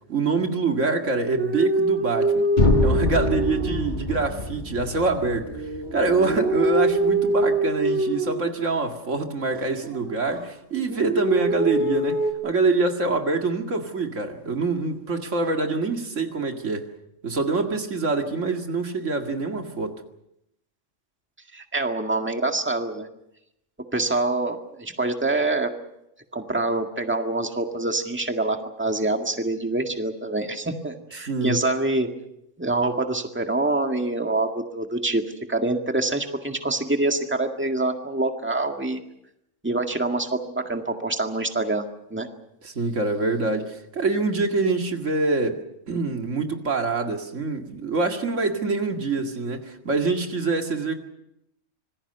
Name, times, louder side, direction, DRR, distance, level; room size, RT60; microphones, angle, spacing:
voice 1, 0.1-2.5 2.8-5.5 5.9-16.8 17.2-20.0 31.3-31.6 42.6-50.9, right 3 dB, 80° right, 4 dB, 2.4 m, -25 dB
sound 1, 1.4-4.3 4.8-9.0 9.5-10.4 10.7-12.3, right 1 dB, 60° right, 3.6 m, -25 dB
sound 2, 2.6-6.5, left 1 dB, 40° left, 1.9 m, -25 dB
voice 2, 21.5-23.1 23.9-25.7 26.3-32.1 32.6-35.2 35.5-39.0 39.6-41.8 42.1-42.3, right 2 dB, 10° right, 4 dB, 1.8 m, -25 dB
26.0 x 20.0 x 6.8 m, 0.81 s
omnidirectional pair, 1.3 m